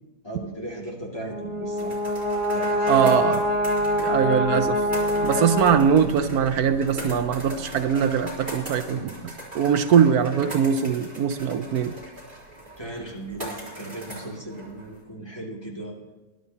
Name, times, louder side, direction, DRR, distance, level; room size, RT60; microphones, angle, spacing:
voice 1, 0.2-2.0 2.5-3.2 10.0-10.1 12.8-16.0, right 1 dB, 15° left, -2 dB, 2.2 m, -37 dB
Brass instrument, 1.2-6.3, left 1 dB, 60° right, 2.2 m, -25 dB
sound 1, 1.3-10.2, left 1 dB, 10° right, 2.6 m, -44 dB
sound 2, 1.8-15.0, right 1 dB, 30° right, 4.4 m, -39 dB
voice 2, 2.9-3.4 4.0-4.8 5.2-11.9, right 7 dB, 75° right, 10 dB, 1.2 m, -21 dB
22.5 x 11.5 x 2.8 m, 1.1 s
omnidirectional pair, 1.6 m